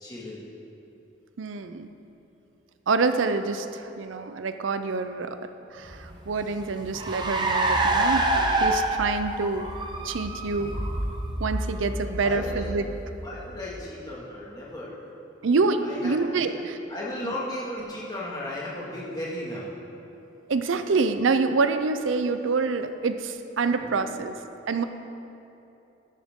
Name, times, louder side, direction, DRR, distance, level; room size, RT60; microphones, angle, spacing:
voice 1, 0.0-0.4 12.2-12.7 13.2-15.0 15.8-16.5 16.9-19.7 23.8-24.1, left 1 dB, 20° left, -6 dB, 2.0 m, -35 dB
voice 2, 1.4-1.9 2.9-5.4 5.7-8.3 8.6-9.7 10.0-10.7 11.4-12.9 15.4-16.5 17.2-17.3 20.5-24.4 24.7-24.8, right 4 dB, 85° right, 10 dB, 0.5 m, -26 dB
Car, 5.9-13.7, right 2 dB, 25° right, 0.8 m, -27 dB
12.5 x 11.0 x 3.7 m, 2.9 s
head